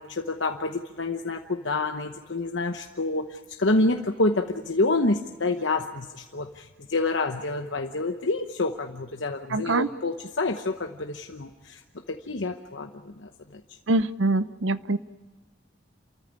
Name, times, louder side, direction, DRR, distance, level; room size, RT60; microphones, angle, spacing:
voice 1, 0.0-11.8 12.1-13.6, left 2 dB, 75° left, 5 dB, 1.0 m, -28 dB
voice 2, 9.5-9.9 13.9-15.0, right 2 dB, 85° right, 14 dB, 0.8 m, -24 dB
28.5 x 14.0 x 9.9 m, 1.4 s
head